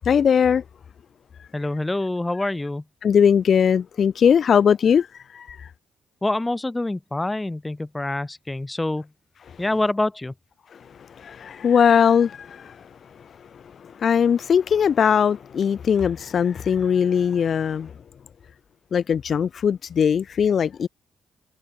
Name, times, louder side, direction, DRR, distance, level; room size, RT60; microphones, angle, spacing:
voice 1, 0.1-0.6 3.0-5.1 5.3-5.7 11.2-12.8 14.0-17.9 18.9-20.9, left 7 dB, 55° left, 3.7 m, -20 dB
voice 2, 1.5-2.8 6.2-9.1 9.6-10.3, left 2 dB, 15° left, 7.2 m, -26 dB
cardioid pair, 90°, 0 cm